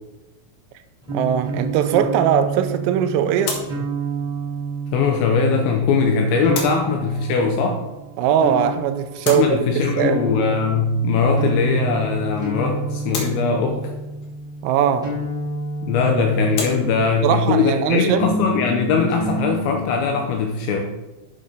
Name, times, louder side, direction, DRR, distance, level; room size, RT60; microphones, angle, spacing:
sound 1, 1.0-17.3 18.1-20.1, right 2 dB, ahead, 2.5 m, -30 dB
voice 1, 1.1-3.6 8.2-10.2 14.6-15.1 17.2-18.2, right 9 dB, 85° right, 3.2 m, -20 dB
sound 2, 3.4-20.3, left 4 dB, 60° left, 2.4 m, -38 dB
voice 2, 4.9-7.8 9.3-13.9 15.8-20.8, left 4 dB, 80° left, 2.7 m, -20 dB
9.0 x 6.6 x 5.1 m
omnidirectional pair, 6.0 m